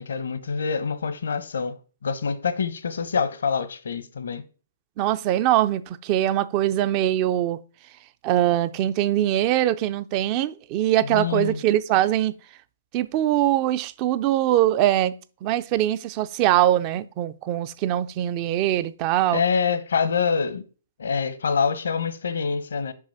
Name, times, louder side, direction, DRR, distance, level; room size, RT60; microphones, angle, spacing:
voice 1, 0.0-4.4 11.1-11.6 19.3-20.6 21.0-22.9, left 6 dB, 80° left, 1.0 m, -25 dB
voice 2, 5.0-7.6 8.2-12.3 12.9-15.1 15.4-19.4, right 13 dB, 35° right, 0.5 m, -22 dB
6.2 x 5.0 x 5.7 m
hypercardioid pair, 130°, 0 cm